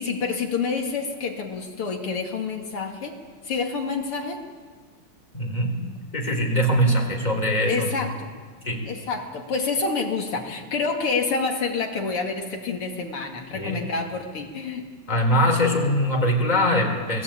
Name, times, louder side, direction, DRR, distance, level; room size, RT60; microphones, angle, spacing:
voice 1, 0.0-3.1 3.4-4.4 7.6-8.3 8.8-14.8, left 4 dB, 80° left, 2 dB, 3.2 m, -28 dB
voice 2, 5.3-5.8 6.1-7.9 8.6-8.9 13.5-13.8 15.1-17.2, equal, 15° left, 2 dB, 4.2 m, -22 dB
29.0 x 19.5 x 9.1 m, 1.5 s
omnidirectional pair, 2.4 m